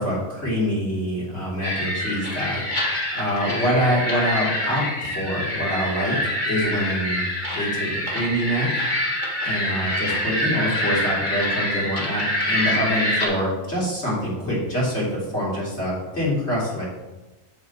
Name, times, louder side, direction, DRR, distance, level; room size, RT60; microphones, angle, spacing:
voice 1, 0.0-2.6 3.1-7.2 7.6-8.7 9.4-16.9, equal, 65° left, -7 dB, 3.7 m, -25 dB
sound 1, 1.6-13.3, left 1 dB, 40° left, 1.9 m, -26 dB
8.0 x 7.4 x 4.4 m, 1.1 s
omnidirectional pair, 1.3 m